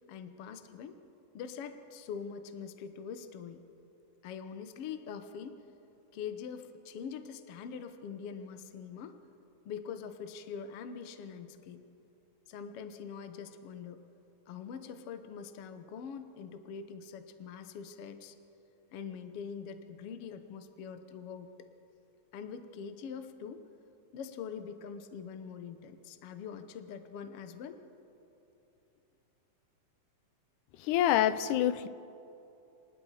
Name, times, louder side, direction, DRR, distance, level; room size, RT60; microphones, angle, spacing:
voice 1, 0.1-1.0 1.3-3.6 4.2-5.6 6.1-9.2 9.6-11.8 12.5-14.0 14.5-18.3 18.9-21.5 22.3-23.6 24.1-27.8, left 6 dB, 65° left, 8 dB, 1.7 m, -43 dB
voice 2, 30.8-31.9, left 11 dB, 85° left, 14 dB, 2.2 m, -26 dB
27.0 x 20.0 x 4.9 m, 2.9 s
omnidirectional pair, 3.5 m